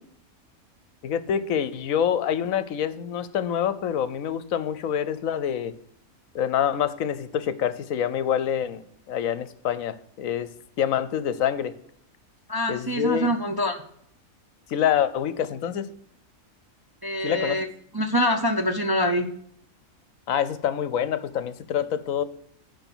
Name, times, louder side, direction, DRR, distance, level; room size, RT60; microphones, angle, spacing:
voice 1, 1.0-5.7 6.3-10.5 10.8-11.7 12.7-13.3 14.7-15.9 17.2-17.6 20.3-22.2, left 9 dB, 75° left, 14 dB, 1.1 m, -26 dB
voice 2, 12.5-13.8 17.0-17.7 17.9-19.3, equal, 25° right, 4 dB, 0.6 m, -25 dB
10.5 x 5.5 x 6.0 m, 0.69 s
omnidirectional pair, 1.5 m